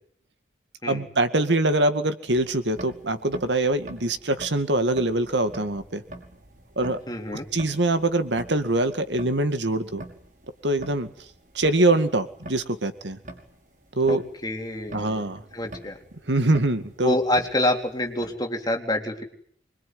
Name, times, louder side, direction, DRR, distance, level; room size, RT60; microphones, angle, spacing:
voice 1, 0.9-6.0 6.8-7.0 7.5-10.0 10.6-11.1 11.5-13.2 14.0-14.2 14.9-15.4 16.3-17.2, right 2 dB, 75° right, 9 dB, 2.2 m, -23 dB
sound 1, 2.3-18.4, right 1 dB, 45° right, 5.6 m, -45 dB
voice 2, 7.1-7.5 14.1-15.2 15.5-16.0 17.0-19.2, left 1 dB, 20° left, 3 dB, 3.9 m, -27 dB
25.5 x 23.0 x 9.6 m, 0.63 s
head